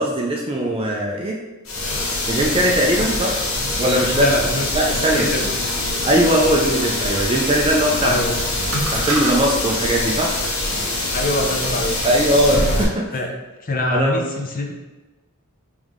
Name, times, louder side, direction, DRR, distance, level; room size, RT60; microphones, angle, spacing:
voice 1, 0.0-1.4 2.3-3.3 3.8-4.3 4.7-5.3 6.0-8.2 8.6-10.3 12.0-13.1 13.9-14.2, right 1 dB, 25° right, -1 dB, 0.3 m, -19 dB
sound 1, 1.7-12.8, left 2 dB, 65° left, 0.8 m, -24 dB
voice 2, 3.9-4.7 5.1-5.5 8.0-8.4 11.1-12.0 13.1-13.3 13.6-14.7, left 1 dB, 40° left, 2 dB, 0.5 m, -24 dB
sound 2, 3.9-9.3, right 1 dB, 65° right, 0.8 m, -33 dB
3.5 x 3.1 x 3.6 m, 1.2 s
head